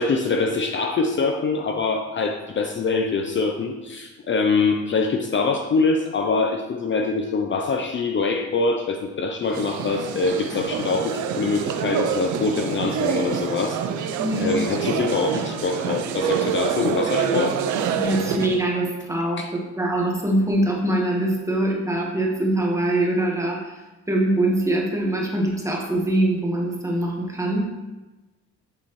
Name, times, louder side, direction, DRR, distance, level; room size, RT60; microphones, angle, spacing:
voice 1, 0.0-13.8 14.4-17.6 19.4-19.5, left 4 dB, 40° left, 3 dB, 0.6 m, -24 dB
sound 1, 9.4-18.6, right 7 dB, 75° right, 0.6 m, -26 dB
voice 2, 14.2-14.6 18.0-23.8 24.1-27.7, right 1 dB, 10° right, -1 dB, 1.4 m, -23 dB
8.6 x 4.1 x 3.1 m, 1.1 s
cardioid pair, 90°, 30 cm